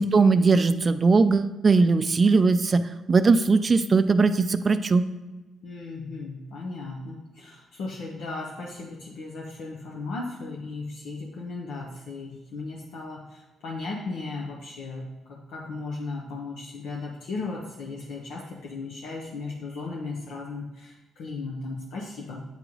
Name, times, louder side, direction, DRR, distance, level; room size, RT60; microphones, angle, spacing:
voice 1, 0.0-5.0, right 4 dB, 35° right, 11 dB, 0.4 m, -20 dB
voice 2, 5.6-22.4, left 3 dB, 80° left, -2 dB, 0.8 m, -36 dB
8.9 x 3.0 x 3.9 m, 1.1 s
cardioid pair, 90°, 0 cm